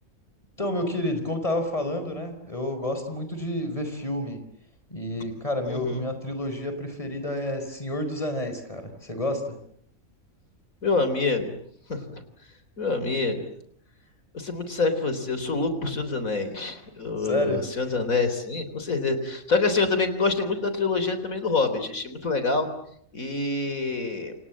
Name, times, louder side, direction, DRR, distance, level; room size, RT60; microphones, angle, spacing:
voice 1, 0.6-4.4 4.9-9.6 17.2-17.6, left 1 dB, 25° left, 7 dB, 5.2 m, -29 dB
voice 2, 5.7-6.1 10.8-11.6 11.9-12.2 12.8-13.5 14.3-22.7 23.1-24.4, left 3 dB, 85° left, 10 dB, 4.2 m, -26 dB
29.0 x 27.5 x 7.5 m, 0.67 s
omnidirectional pair, 1.4 m